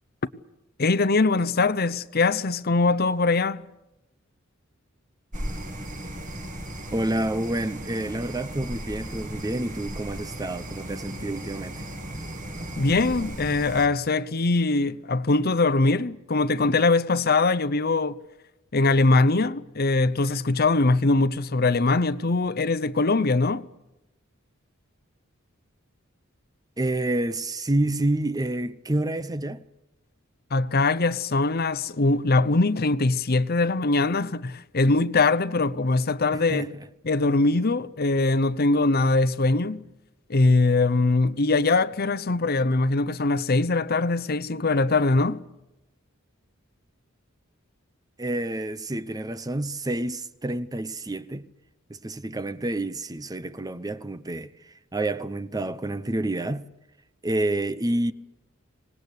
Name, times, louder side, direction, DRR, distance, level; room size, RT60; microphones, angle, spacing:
voice 1, 0.8-3.6 12.8-18.2 18.7-23.7 30.5-36.7 37.0-39.9 40.3-45.4, left 3 dB, 50° left, 0.8 m, -22 dB
sound 1, 5.3-13.9, right 1 dB, 40° right, 2.7 m, -36 dB
voice 2, 6.9-11.8 26.8-29.6 36.3-36.7 48.2-51.5 51.9-56.7 57.2-58.1, right 1 dB, 20° right, 0.7 m, -28 dB
25.0 x 19.5 x 8.2 m
head